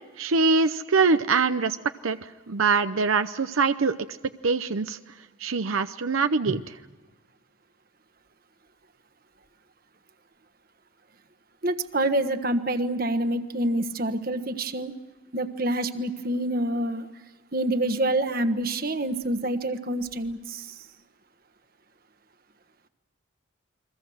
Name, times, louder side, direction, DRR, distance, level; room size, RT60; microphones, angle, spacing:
voice 1, 0.2-1.8 2.0-4.0 4.4-5.0 5.4-6.8, right 4 dB, 85° right, 10 dB, 0.7 m, -23 dB
voice 2, 11.6-14.9 15.3-17.1 17.5-20.7, right 1 dB, 45° right, 9 dB, 1.3 m, -27 dB
29.5 x 22.5 x 6.4 m, 1.2 s
head